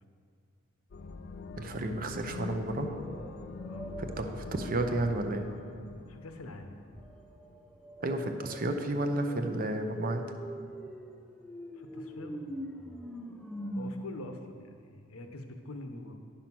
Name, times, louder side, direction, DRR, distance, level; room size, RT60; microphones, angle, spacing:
sound 1, 0.9-7.6, left 3 dB, 50° left, 0.4 m, -44 dB
voice 1, 1.6-2.9 4.0-5.5 8.0-10.2, right 1 dB, 40° right, 6 dB, 0.7 m, -32 dB
sound 2, 2.1-5.8 7.0-13.9, equal, 5° left, 0.5 m, -44 dB
voice 2, 3.6-4.0 6.1-6.8 11.7-12.4 13.7-16.1, left 2 dB, 75° left, 6 dB, 0.8 m, -45 dB
10.0 x 5.7 x 6.1 m, 2.2 s
head